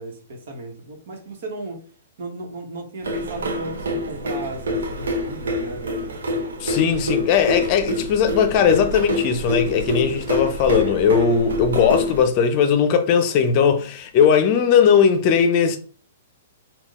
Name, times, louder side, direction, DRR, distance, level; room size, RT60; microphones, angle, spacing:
voice 1, 0.0-1.8 2.2-6.1, right 2 dB, 65° right, 1.2 m, -35 dB
sound 1, 3.0-12.2, left 1 dB, 85° right, 0.7 m, -26 dB
voice 2, 6.6-15.8, left 7 dB, 40° left, 0.5 m, -18 dB
3.8 x 2.3 x 3.6 m
hypercardioid pair, 140°, 0 cm